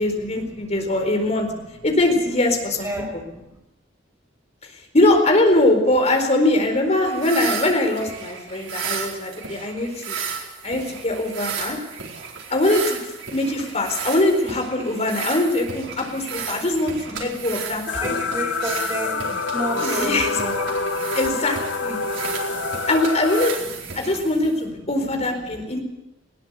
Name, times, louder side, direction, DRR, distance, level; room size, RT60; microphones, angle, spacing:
voice 1, 0.0-1.5 1.8-2.9 4.6-10.2 10.6-11.8 12.5-18.1 19.8-20.3 21.1-22.0 22.9-25.8, left 1 dB, 35° left, 4 dB, 4.4 m, -22 dB
voice 2, 2.8-3.4 17.9-21.2 22.0-22.8, right 1 dB, 15° right, 1 dB, 6.1 m, -31 dB
sound 1, 7.1-24.7, right 6 dB, 90° right, 4.3 m, -33 dB
sound 2, 17.9-23.5, left 4 dB, 65° left, 1.3 m, -27 dB
20.5 x 17.5 x 8.3 m, 0.93 s
head